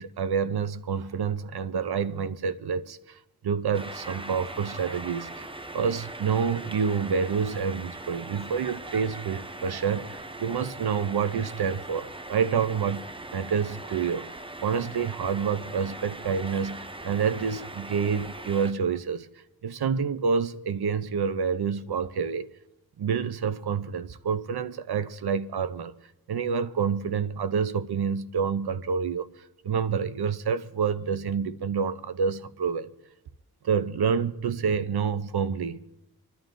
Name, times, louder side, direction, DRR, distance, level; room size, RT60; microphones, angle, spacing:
voice 1, 0.0-3.2 3.4-5.5 5.7-13.1 13.3-14.3 14.6-19.3 19.6-22.5 23.0-25.9 26.3-29.3 29.6-32.9 33.6-35.8, right 6 dB, 85° right, 0.7 m, -28 dB
sound 1, 3.7-18.7, right 2 dB, 15° right, 0.6 m, -40 dB
28.5 x 11.5 x 2.6 m
wide cardioid pair, 60°, 38 cm